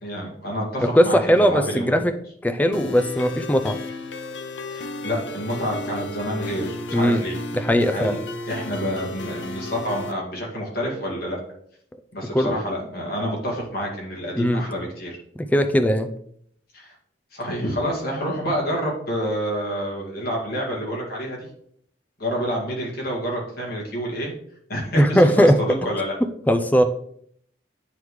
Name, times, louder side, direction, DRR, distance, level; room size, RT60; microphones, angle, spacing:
voice 1, 0.0-2.0 4.7-7.4 7.9-8.2 8.5-11.4 12.1-15.2 16.7-16.9 17.3-21.5 22.2-24.3 24.7-25.5 25.8-26.2, equal, 55° left, -3 dB, 2.0 m, -28 dB
voice 2, 0.8-2.1 2.4-3.8 6.9-7.2 7.5-8.2 12.3-12.6 14.4-14.7 15.4-16.1 25.0-25.6 26.5-26.8, equal, 10° left, 7 dB, 0.4 m, -19 dB
sound 1, 2.7-10.1, left 2 dB, 70° left, 0.6 m, -34 dB
9.3 x 3.6 x 3.2 m, 0.66 s
head